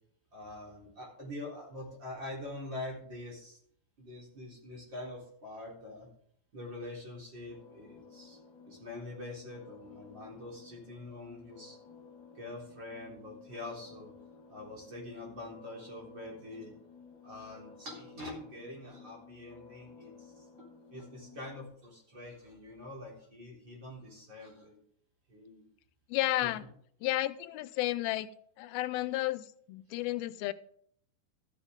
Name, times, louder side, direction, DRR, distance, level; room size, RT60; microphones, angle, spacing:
voice 1, 0.3-3.6 4.0-6.1 6.5-8.4 8.7-11.8 12.3-14.1 14.5-16.7 17.2-24.8 25.3-25.6 26.4-26.5, left 2 dB, 30° right, -2 dB, 4.2 m, -45 dB
sound 1, 7.3-21.7, left 5 dB, 55° left, 1.3 m, -55 dB
voice 2, 26.1-26.6 27.0-28.3 28.6-30.5, left 16 dB, 90° left, 15 dB, 2.5 m, -32 dB
14.0 x 9.3 x 3.6 m, 0.64 s
omnidirectional pair, 4.2 m